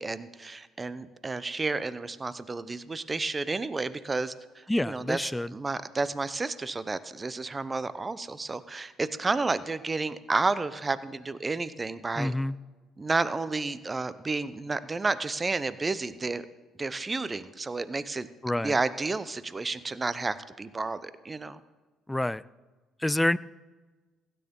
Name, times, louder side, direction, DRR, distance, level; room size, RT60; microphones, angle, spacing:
voice 1, 0.0-12.3 13.0-16.5 16.8-18.3 18.6-21.6, right 3 dB, 25° right, 15 dB, 0.7 m, -31 dB
voice 2, 4.7-5.5 12.2-12.6 18.4-18.8 22.1-22.4 23.0-23.4, left 1 dB, 10° left, 20 dB, 0.3 m, -27 dB
16.0 x 9.3 x 3.8 m, 1.3 s
hypercardioid pair, 55°, 0 cm